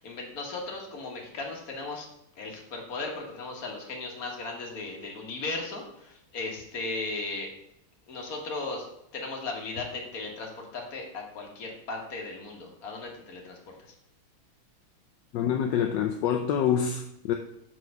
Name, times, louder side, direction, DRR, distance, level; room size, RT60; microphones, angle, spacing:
voice 1, 0.0-2.1 2.4-7.5 8.1-8.9 9.1-13.8, left 3 dB, 45° left, 0 dB, 1.8 m, -36 dB
voice 2, 15.3-17.3, left 8 dB, 70° left, 4 dB, 1.1 m, -26 dB
5.8 x 4.8 x 6.4 m, 0.76 s
omnidirectional pair, 2.3 m